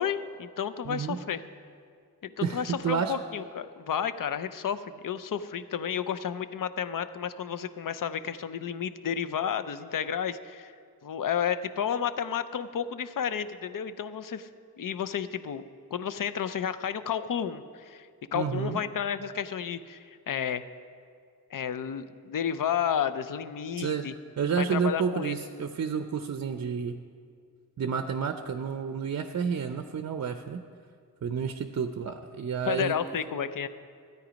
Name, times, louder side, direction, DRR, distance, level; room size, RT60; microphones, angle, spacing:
voice 1, 0.0-1.4 2.2-10.7 11.0-14.5 14.8-15.6 15.9-20.6 21.5-24.1 24.6-25.4 32.7-33.7, left 8 dB, 60° left, 13 dB, 0.6 m, -31 dB
voice 2, 0.8-1.2 2.4-3.1 18.3-18.8 23.8-24.1 24.4-27.0 27.8-30.6 31.2-33.0, right 6 dB, 45° right, 8 dB, 0.6 m, -30 dB
13.0 x 9.2 x 5.1 m, 2.2 s
cardioid pair, 80°, 38 cm